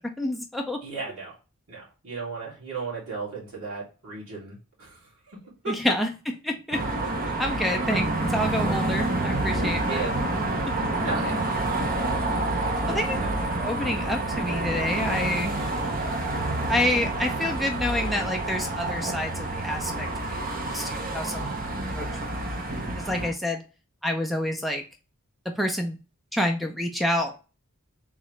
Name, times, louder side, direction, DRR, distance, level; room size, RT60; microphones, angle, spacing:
voice 1, 0.2-0.8 5.7-6.1 6.4-6.8 7.4-10.1 12.9-13.2 13.6-15.5 16.7-20.1 20.7-21.5 21.9-22.1 23.0-23.6 24.0-24.8 25.6-26.0 26.3-27.4, left 1 dB, ahead, 3 dB, 0.4 m, -28 dB
voice 2, 0.8-1.3 1.7-5.0 5.3-5.4 5.6-5.7 7.0-7.3 9.9-10.1 11.0-11.4 12.6-13.3, right 4 dB, 80° right, -5 dB, 2.3 m, -35 dB
sound 1, 6.7-23.3, right 2 dB, 40° right, 0.9 m, -28 dB
3.7 x 3.1 x 3.1 m, 0.33 s
head